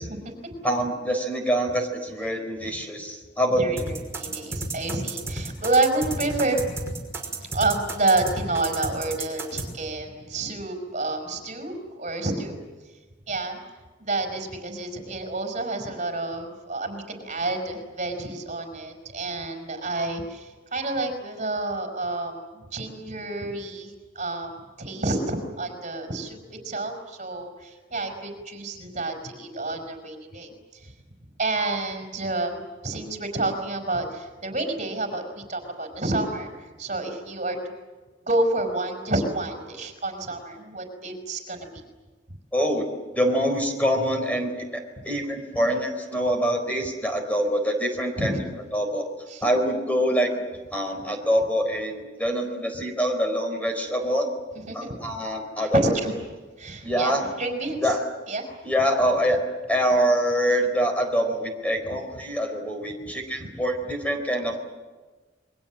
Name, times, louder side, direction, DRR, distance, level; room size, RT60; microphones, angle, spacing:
voice 1, 0.0-0.6 3.6-6.7 7.4-12.6 13.3-13.6 14.1-30.9 31.4-37.7 38.3-41.8 45.6-45.7 48.2-48.5 49.3-49.4 54.5-55.1 55.6-56.1 56.6-57.9 58.3-58.5 63.4-63.5, right 2 dB, 40° right, 5 dB, 5.4 m, -29 dB
voice 2, 0.6-3.6 42.5-42.9 43.2-48.4 48.7-49.1 49.4-50.3 50.7-54.3 54.7-56.0 56.8-57.2 57.8-58.0 58.6-59.4 59.7-64.6, equal, 10° left, 4 dB, 4.3 m, -25 dB
sound 1, 3.8-9.7, right 2 dB, 15° right, 5.6 m, -31 dB
29.0 x 23.0 x 7.6 m, 1.3 s
head